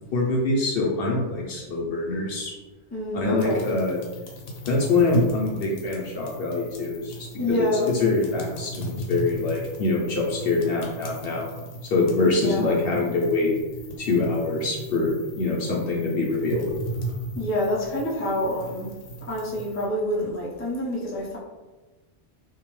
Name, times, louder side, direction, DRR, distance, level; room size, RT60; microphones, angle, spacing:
voice 1, 0.1-2.5 3.1-4.0 4.7-7.3 7.6-7.7 8.0-11.5 11.9-13.5 14.0-15.1 15.4-16.7, left 3 dB, 60° left, -2 dB, 0.7 m, -24 dB
voice 2, 2.9-3.7 7.4-7.9 12.2-12.8 17.4-18.9 19.3-21.4, left 1 dB, 20° left, -6 dB, 0.4 m, -27 dB
sound 1, 3.4-19.8, right 1 dB, 90° left, 1.0 m, -37 dB
2.7 x 2.2 x 3.0 m, 1.2 s
omnidirectional pair, 1.2 m